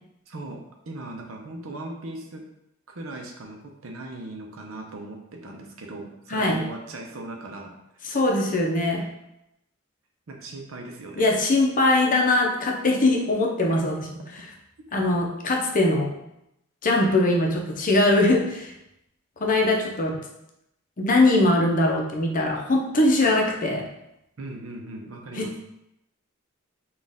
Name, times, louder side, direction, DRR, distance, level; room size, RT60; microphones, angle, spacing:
voice 1, 0.3-2.4 2.9-8.0 8.9-9.1 10.3-11.2 15.0-15.1 24.4-25.5, right 2 dB, 75° right, 2 dB, 0.7 m, -38 dB
voice 2, 6.3-6.6 8.1-9.0 11.2-14.1 14.9-16.1 16.8-18.7 19.4-20.2 21.0-23.9 25.3-25.6, left 2 dB, 40° left, 0 dB, 0.6 m, -21 dB
4.2 x 2.4 x 3.5 m, 0.85 s
head